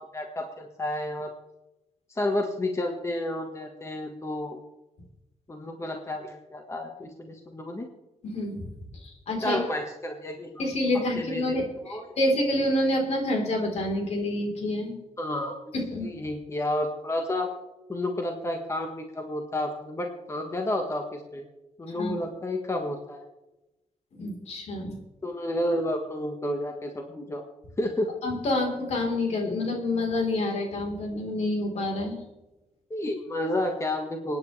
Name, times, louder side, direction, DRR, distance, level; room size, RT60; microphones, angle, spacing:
voice 1, 0.0-1.3 2.1-4.6 5.5-7.9 9.4-10.6 10.9-11.6 11.8-12.1 15.2-15.7 16.0-17.5 17.9-21.4 21.8-23.2 25.2-27.4 27.8-28.1 32.9-34.4, left 1 dB, 25° left, 3 dB, 1.5 m, -31 dB
voice 2, 8.2-8.6 9.0-9.6 10.6-14.9 15.7-16.1 21.9-22.1 24.1-25.0 28.2-32.2, left 1 dB, 70° left, 1 dB, 3.9 m, -28 dB
26.5 x 9.7 x 3.3 m, 0.99 s
cardioid pair, 105°, 11 cm